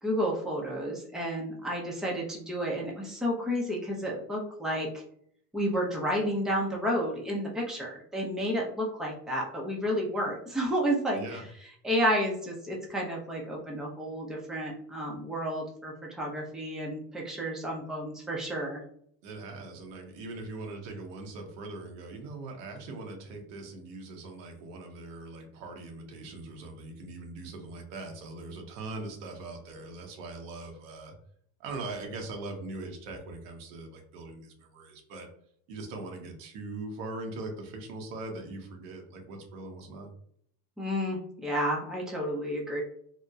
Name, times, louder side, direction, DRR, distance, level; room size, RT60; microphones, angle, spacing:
voice 1, 0.0-5.0 5.5-11.4 11.8-18.8 40.8-42.8, equal, ahead, -2 dB, 0.5 m, -31 dB
voice 2, 19.2-31.1 31.6-35.3 35.7-40.1, right 2 dB, 90° right, 3 dB, 0.8 m, -41 dB
2.8 x 2.1 x 2.3 m, 0.64 s
supercardioid pair, 110°, 37 cm